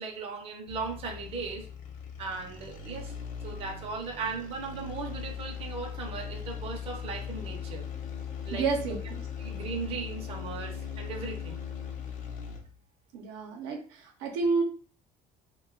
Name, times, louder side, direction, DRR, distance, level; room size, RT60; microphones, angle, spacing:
voice 1, 0.0-1.7 2.2-3.1 3.4-7.9 8.4-9.0 9.4-11.6, right 4 dB, 35° right, 2 dB, 0.6 m, -37 dB
sound 1, 0.7-12.8, left 7 dB, 50° left, 0.6 m, -39 dB
voice 2, 8.5-9.2 13.1-14.6, right 4 dB, 85° right, 3 dB, 0.7 m, -30 dB
2.3 x 2.2 x 3.7 m, 0.41 s
cardioid pair, 145°, 16 cm